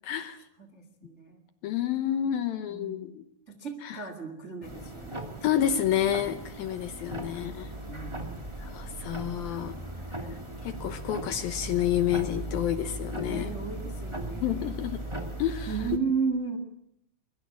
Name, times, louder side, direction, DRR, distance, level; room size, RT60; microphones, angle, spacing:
voice 1, 0.0-0.5 1.6-3.2 3.8-4.0 5.4-7.7 8.6-9.8 10.6-13.5 14.4-15.0 15.4-15.7, left 11 dB, 70° left, 10 dB, 2.4 m, -29 dB
voice 2, 0.6-1.4 2.7-3.2 3.5-5.2 7.0-7.6 7.8-8.6 9.4-10.7 13.2-14.8 15.7-16.6, right 5 dB, 30° right, 8 dB, 1.3 m, -35 dB
sound 1, 4.6-16.0, right 1 dB, 45° right, 0.3 m, -38 dB
22.5 x 22.0 x 8.6 m, 0.75 s
omnidirectional pair, 5.1 m